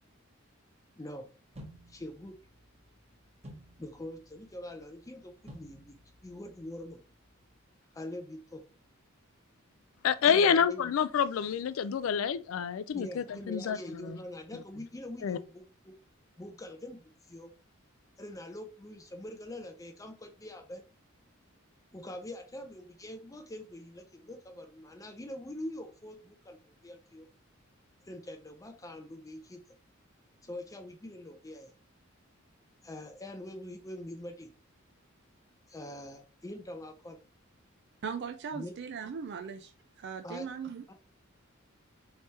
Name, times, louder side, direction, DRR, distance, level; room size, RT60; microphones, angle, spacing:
voice 1, 1.0-1.3 1.9-2.3 3.8-6.0 6.2-7.0 7.9-8.6 10.2-10.9 12.9-16.0 16.4-17.5 18.2-20.8 21.9-27.3 28.0-29.6 30.4-31.7 32.8-34.5 35.7-37.2 38.5-38.7 40.2-40.5 40.9-41.0, left 1 dB, 15° left, 0.5 m, -44 dB
sound 1, 1.5-7.6, equal, 30° right, 1.2 m, -54 dB
voice 2, 10.0-14.2 15.2-15.4, left 7 dB, 75° left, 0.3 m, -28 dB
voice 3, 38.0-39.7 40.0-40.8, right 6 dB, 55° right, 0.4 m, -38 dB
3.3 x 3.3 x 4.2 m
head